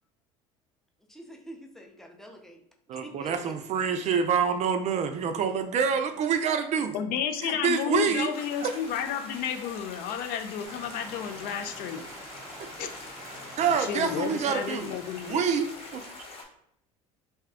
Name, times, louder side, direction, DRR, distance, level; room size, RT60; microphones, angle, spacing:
voice 1, 1.1-2.6 3.0-3.6, equal, ahead, 1 dB, 0.6 m, -45 dB
voice 2, 2.9-6.9 7.4-8.3 8.6-8.7 12.6-12.7 13.3-14.9 15.2-16.1, right 6 dB, 45° right, 7 dB, 0.4 m, -27 dB
voice 3, 6.9-12.0 12.8-12.9 13.3-13.5 13.8-15.4, left 8 dB, 60° left, 8 dB, 0.4 m, -32 dB
sound 1, 8.3-16.4, left 3 dB, 35° left, 1.0 m, -44 dB
sound 2, 10.6-16.1, right 1 dB, 20° right, 1.0 m, -47 dB
2.7 x 2.3 x 3.4 m, 0.73 s
supercardioid pair, 85°, 17 cm